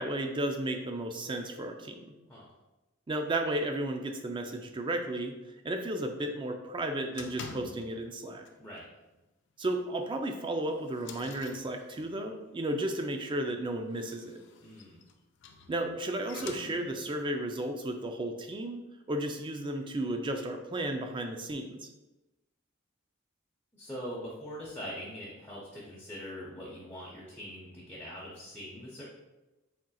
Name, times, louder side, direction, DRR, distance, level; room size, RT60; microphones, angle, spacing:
voice 1, 0.0-2.0 3.1-5.4 5.6-8.5 9.6-14.4 15.7-18.8 19.1-21.9, right 1 dB, 25° right, 5 dB, 0.4 m, -33 dB
sound 1, 7.1-8.2 8.4-8.8 9.1-9.2 9.7-9.8 10.4-12.3 13.8-17.2, left 5 dB, 65° left, 0.4 m, -47 dB
voice 2, 14.6-15.0 23.7-29.0, equal, 10° left, -7 dB, 0.8 m, -42 dB
4.3 x 3.7 x 2.3 m, 1.0 s
head